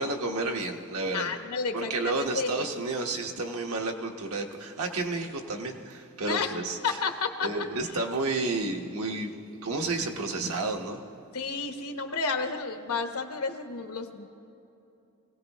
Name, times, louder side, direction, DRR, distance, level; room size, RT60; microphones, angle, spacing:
voice 1, 0.0-1.4 1.7-7.0 7.4-9.3 9.6-11.0, right 2 dB, 80° right, 2 dB, 1.3 m, -31 dB
voice 2, 1.1-2.7 6.3-6.6 6.8-7.5 11.3-14.2, left 4 dB, 80° left, 5 dB, 1.1 m, -31 dB
24.0 x 17.0 x 3.0 m, 2.8 s
head